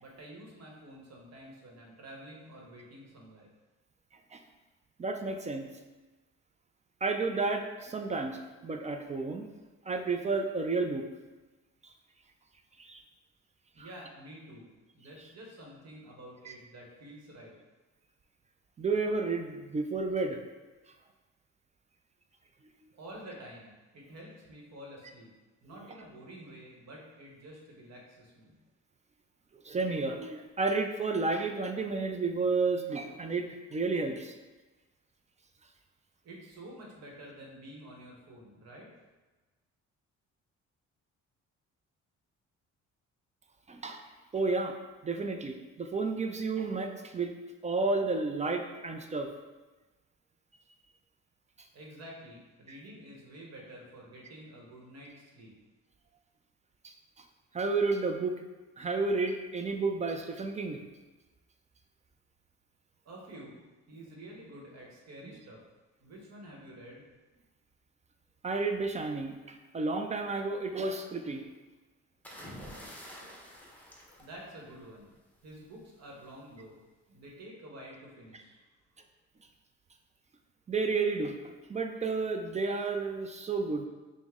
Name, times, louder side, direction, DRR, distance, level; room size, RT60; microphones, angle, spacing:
voice 1, 0.0-3.5 13.7-14.7 14.9-17.5 23.0-25.3 25.6-28.5 36.2-38.9 51.7-55.5 63.0-63.6 63.9-65.6 66.0-67.0 74.2-75.1 75.4-76.8 77.1-78.6, right 1 dB, 60° right, -2 dB, 1.1 m, -49 dB
voice 2, 5.0-5.7 7.0-9.5 9.9-11.0 12.8-13.0 13.8-13.9 16.5-16.6 18.8-20.4 29.6-34.3 43.7-44.0 44.3-44.8 45.0-47.3 47.6-49.3 56.8-56.9 57.5-58.4 58.8-60.8 68.4-71.4 80.7-83.9, right 3 dB, 25° right, 5 dB, 0.3 m, -31 dB
sound 1, 72.2-75.0 76.2-76.5, equal, 5° left, 0.8 m, -48 dB
5.1 x 2.1 x 3.6 m, 1.2 s
cardioid pair, 90°, 30 cm